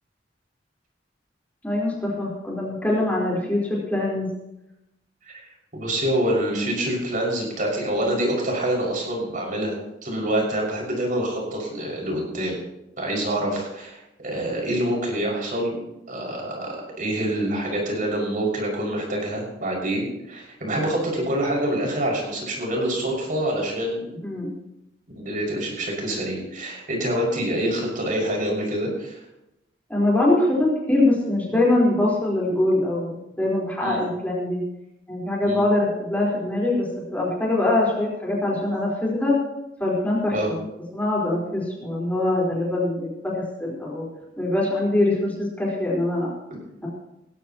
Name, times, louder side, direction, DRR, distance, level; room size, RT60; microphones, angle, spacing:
voice 1, 1.6-4.3 24.2-24.5 29.9-34.6 35.1-39.3 39.8-40.6 40.9-44.1 44.4-46.3 46.8-46.9, left 2 dB, 10° left, -5 dB, 4.5 m, -23 dB
voice 2, 5.3-9.8 10.0-12.6 13.0-15.8 16.1-24.1 25.1-29.2 33.8-34.0 35.4-35.6 40.3-40.5, right 1 dB, 50° right, -1 dB, 6.1 m, -26 dB
19.0 x 16.0 x 3.1 m, 0.90 s
head